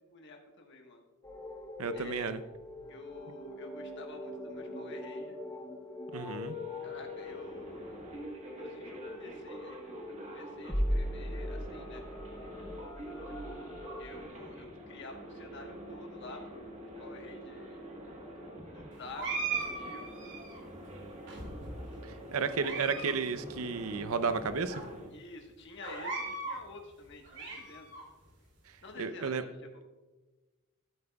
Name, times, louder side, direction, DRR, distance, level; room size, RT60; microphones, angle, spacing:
voice 1, 0.1-1.0 1.9-2.3 2.9-5.4 6.8-8.0 8.6-12.0 13.4-13.6 14.0-16.7 17.0-17.9 18.6-20.2 25.1-27.9 28.8-29.9, left 3 dB, 55° left, 3 dB, 1.3 m, -49 dB
sound 1, 1.2-14.3, equal, 15° left, 0.9 m, -40 dB
voice 2, 1.8-2.4 6.1-6.6 22.0-24.7 29.0-29.4, right 5 dB, 75° right, 11 dB, 0.6 m, -32 dB
sound 2, 6.1-25.1, left 1 dB, 30° right, 1.3 m, -46 dB
sound 3, 19.2-20.6 21.3-21.9 22.4-23.1 23.4-23.5 24.2-24.3 24.7-24.8 25.8-26.6 27.1-28.0, right 4 dB, 55° right, 2.6 m, -38 dB
12.0 x 8.6 x 2.3 m, 1.2 s
head